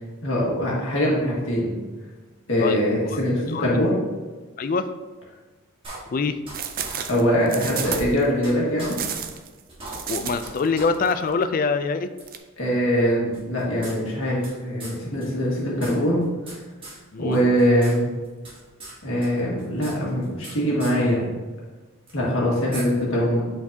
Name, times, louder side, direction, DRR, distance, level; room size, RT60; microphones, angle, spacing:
voice 1, 0.2-1.8 2.5-3.9 7.1-9.0 12.6-16.3 17.2-18.1 19.0-21.3 22.1-23.4, equal, 65° left, -4 dB, 1.8 m, -22 dB
voice 2, 2.6-3.2 3.5-3.8 4.6-4.9 6.1-6.4 10.1-12.1 17.1-17.4, left 4 dB, 40° left, 11 dB, 0.3 m, -24 dB
sound 1, 5.8-6.5 6.8-6.9 7.3-7.4 7.7-8.5 8.8-8.9 9.3-9.4 9.7-10.5 10.7-10.9 11.2-11.3 12.2-12.3 13.3-14.5 14.8-14.9 15.2-15.3 15.6-16.6 16.8-17.0 17.3-17.9 18.2-18.9 19.2-20.5 20.8-20.9 22.1-22.2 22.7-22.8, right 2 dB, 25° right, 1.6 m, -39 dB
sound 2, 6.5-8.2 8.9-10.7 10.9-11.1 12.3-12.4, right 7 dB, 40° right, 0.4 m, -31 dB
8.1 x 4.5 x 2.8 m, 1.3 s
head